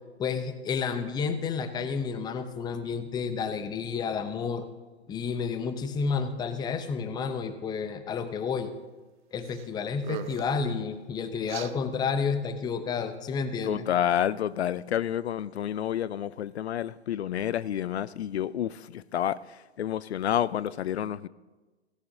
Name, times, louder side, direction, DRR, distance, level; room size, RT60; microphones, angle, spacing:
voice 1, 0.2-4.7 5.1-8.7 9.3-13.8, left 5 dB, 10° left, 0.7 m, -30 dB
sound 1, 9.4-9.7 10.0-10.6 11.5-11.7, right 13 dB, 45° right, 0.8 m, -39 dB
voice 2, 13.7-21.3, left 10 dB, 75° left, 0.5 m, -29 dB
17.0 x 16.5 x 2.7 m
hypercardioid pair, 120°, 33 cm